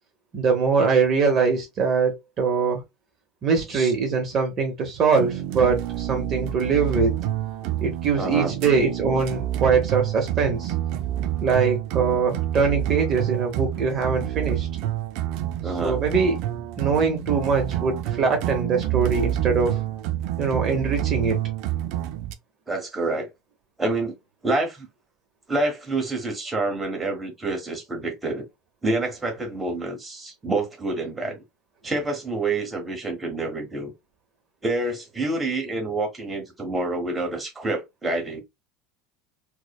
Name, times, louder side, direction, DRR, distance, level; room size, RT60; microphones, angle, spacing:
voice 1, 0.3-2.8 3.4-7.1 7.8-10.7 11.4-14.7 15.8-16.3 16.8-19.8 20.4-21.4, right 5 dB, 35° right, 0.9 m, -22 dB
sound 1, 5.1-22.3, right 12 dB, 60° right, 0.4 m, -28 dB
voice 2, 8.1-8.6 15.6-16.0 22.7-23.3 23.8-24.2 24.4-24.9 25.5-28.5 28.8-31.4 31.8-33.9 34.6-38.4, right 2 dB, 10° right, 1.1 m, -27 dB
4.7 x 2.1 x 2.2 m
supercardioid pair, 140°, 0 cm